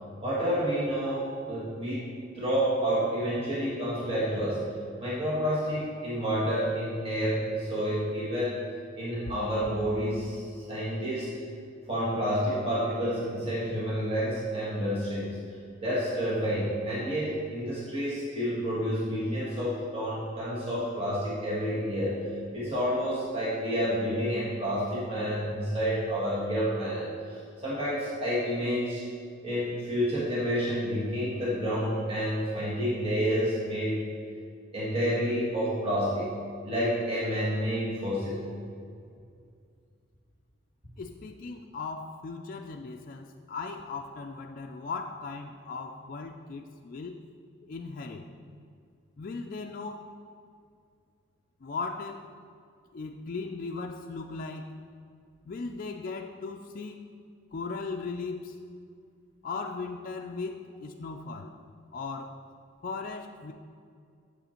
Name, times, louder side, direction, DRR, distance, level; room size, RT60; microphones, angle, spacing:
voice 1, 0.2-2.0 2.4-4.6 5.0-8.6 9.0-11.3 11.9-15.4 15.8-22.2 22.5-29.0 29.4-34.0 34.7-36.3 36.6-38.4, equal, 30° right, -8 dB, 1.6 m, -29 dB
voice 2, 41.0-47.2 47.6-48.3 49.2-50.1 51.6-52.3 52.9-54.8 55.5-57.1 57.5-58.6 59.4-61.6 61.9-62.3 62.8-63.5, left 4 dB, 45° left, 2 dB, 0.4 m, -37 dB
8.1 x 6.9 x 4.3 m, 2.3 s
head